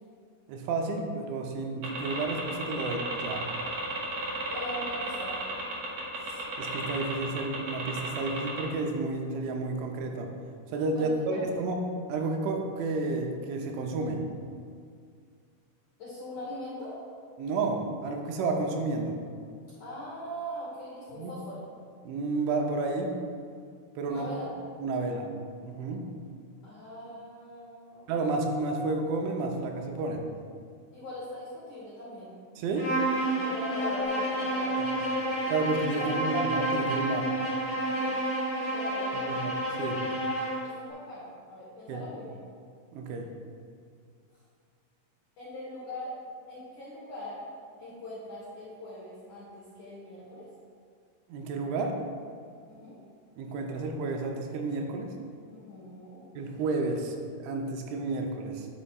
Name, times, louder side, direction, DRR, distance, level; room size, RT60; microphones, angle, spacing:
voice 1, 0.5-3.4 6.3-10.3 10.7-11.8 12.1-14.2 17.4-19.2 21.1-21.3 22.0-23.2 24.0-24.3 24.8-25.3 25.7-26.1 28.1-30.3 32.6-32.9 34.8-34.9 35.5-37.3 39.1-40.0 41.9-42.0 42.9-43.3 51.3-52.0 53.4-55.1 56.4-58.7, right 3 dB, 85° right, 2 dB, 3.0 m, -31 dB
sound 1, 1.8-8.6, right 2 dB, 65° right, 2.0 m, -34 dB
voice 2, 4.5-5.4 10.9-11.5 16.0-17.0 19.8-21.6 24.1-24.5 26.6-28.1 30.9-32.3 33.4-34.8 36.0-36.3 37.9-38.2 38.7-39.3 40.6-42.4 45.4-46.1 46.5-47.4 47.8-50.5 52.7-53.0 55.5-56.2, equal, 85° left, -8 dB, 1.6 m, -41 dB
Bowed string instrument, 32.7-40.7, right 1 dB, 60° left, 1.8 m, -30 dB
11.0 x 6.4 x 2.4 m, 2.2 s
omnidirectional pair, 5.6 m